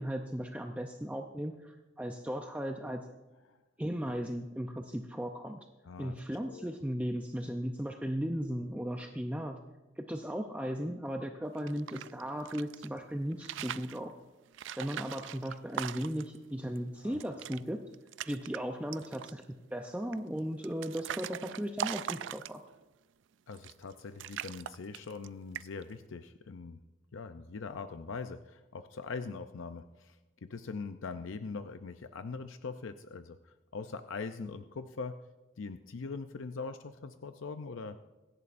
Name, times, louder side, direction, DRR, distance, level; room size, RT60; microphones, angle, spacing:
voice 1, 0.0-3.0 3.8-5.6 6.0-9.6 10.0-14.1 14.8-17.8 18.3-19.4 19.7-22.6, equal, 5° right, 3 dB, 0.5 m, -36 dB
voice 2, 5.8-6.2 6.5-6.7 17.0-17.2 23.5-26.8 27.1-35.2 35.6-38.0, left 4 dB, 80° left, 9 dB, 0.5 m, -42 dB
sound 1, 11.5-12.9 13.3-14.0 14.5-16.4 16.8-16.9 17.1-17.6 17.9-18.6 18.9-19.4 20.1-22.8 23.5-23.9 24.2-25.3 25.5-25.9, right 9 dB, 70° right, 0.3 m, -40 dB
24.5 x 11.0 x 2.6 m, 1.1 s
head